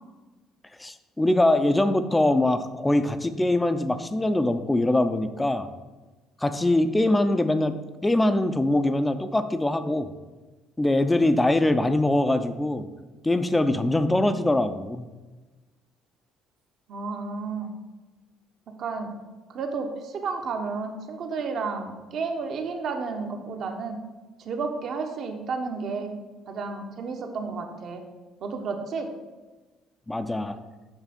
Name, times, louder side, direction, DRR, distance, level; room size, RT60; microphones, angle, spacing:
voice 1, 0.8-5.7 6.4-7.8 8.0-10.1 10.8-12.9 13.2-15.0 30.1-30.6, left 1 dB, 15° left, 10 dB, 0.5 m, -23 dB
voice 2, 16.9-17.7 18.8-19.1 19.5-24.0 24.4-26.1 26.5-28.0 28.4-29.1, right 4 dB, 60° right, 4 dB, 0.9 m, -31 dB
7.3 x 3.3 x 5.2 m, 1.2 s
supercardioid pair, 85°, 0 cm